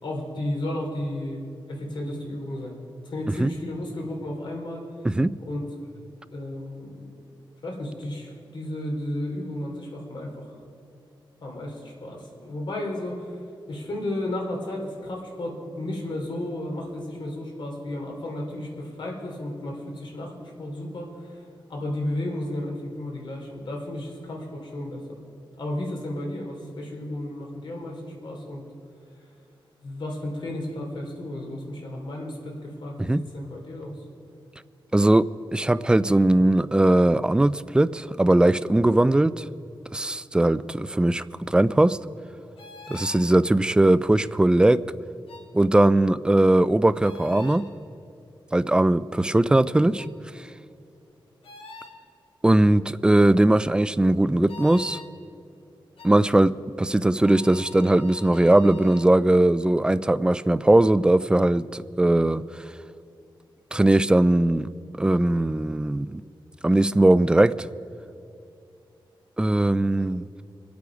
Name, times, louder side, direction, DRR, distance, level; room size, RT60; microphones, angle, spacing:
voice 1, 0.0-2.8 3.0-4.9 5.4-5.9 6.3-7.1 7.6-10.6 11.4-13.4 13.7-20.3 20.6-21.4 21.7-25.2 25.6-28.6 29.8-34.0, left 1 dB, 65° left, 0 dB, 3.1 m, -33 dB
voice 2, 34.9-39.4 39.9-42.0 42.9-44.8 45.5-47.7 48.5-50.1 50.4-50.5 52.4-55.0 56.0-62.6 63.7-64.7 65.0-66.2 66.6-67.7 69.4-70.4, right 1 dB, 10° right, 15 dB, 0.3 m, -20 dB
sound 1, 42.6-43.3 45.3-45.5 47.0-47.6 50.0-50.1 51.4-52.0 54.5-55.1 56.0-56.1 57.2-59.1, left 4 dB, 85° left, 1.8 m, -44 dB
24.0 x 8.4 x 5.0 m, 2.5 s
wide cardioid pair, 145°, 9 cm